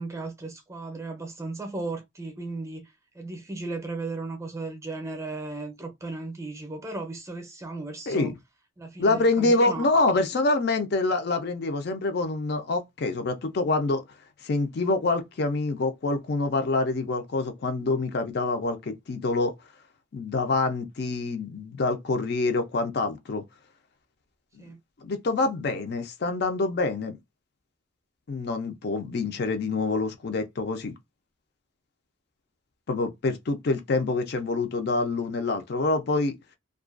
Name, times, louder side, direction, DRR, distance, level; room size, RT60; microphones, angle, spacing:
voice 1, 0.0-8.3 8.8-9.9 24.6-24.8, right 3 dB, 15° right, 0.5 m, -36 dB
voice 2, 9.0-14.0 14.4-19.5 20.1-23.4 24.6-24.7 25.0-27.2 28.3-30.9 32.9-36.3, left 3 dB, 55° left, 0.4 m, -26 dB
2.4 x 2.2 x 2.4 m
head